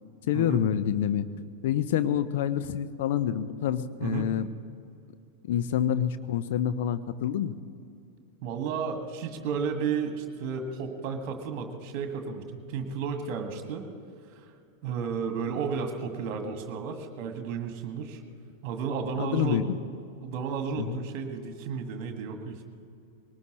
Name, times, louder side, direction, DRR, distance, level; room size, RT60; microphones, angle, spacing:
voice 1, 0.3-1.3 1.6-4.5 5.4-7.6 19.2-19.8 20.8-21.0, left 10 dB, 55° left, 12 dB, 0.6 m, -27 dB
voice 2, 8.4-13.8 14.4-14.5 14.8-18.2 18.6-19.6 20.2-22.6, right 6 dB, 45° right, 5 dB, 1.8 m, -33 dB
21.0 x 19.0 x 3.1 m, 2.5 s
figure-of-eight pair, 90°, 0 cm